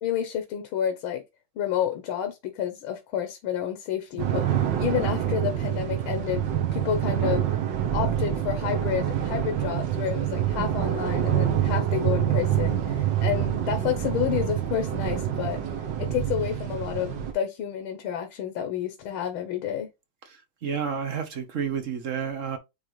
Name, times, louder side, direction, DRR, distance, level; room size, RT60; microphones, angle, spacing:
voice 1, 0.0-1.2 1.6-6.4 6.7-7.5 7.9-15.6 16.0-19.9, left 9 dB, 75° left, 1.8 m, -30 dB
sound 1, 4.2-17.3, right 10 dB, 60° right, 1.7 m, -26 dB
voice 2, 20.3-22.6, right 7 dB, 45° right, 1.2 m, -30 dB
9.0 x 3.4 x 3.2 m
omnidirectional pair, 2.3 m